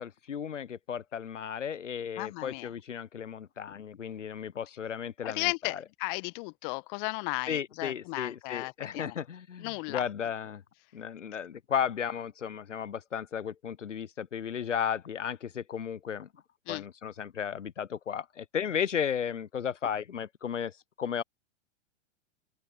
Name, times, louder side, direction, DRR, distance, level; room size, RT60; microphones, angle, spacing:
voice 1, 0.0-5.8 7.5-10.6 10.9-16.3 16.7-21.2, left 8 dB, 85° left, 0.8 m, -34 dB
voice 2, 2.2-2.7 5.2-9.1 9.6-10.0 16.7-16.8, left 30 dB, 45° left, 1.5 m, -35 dB
open air
figure-of-eight pair, 100°, 36 cm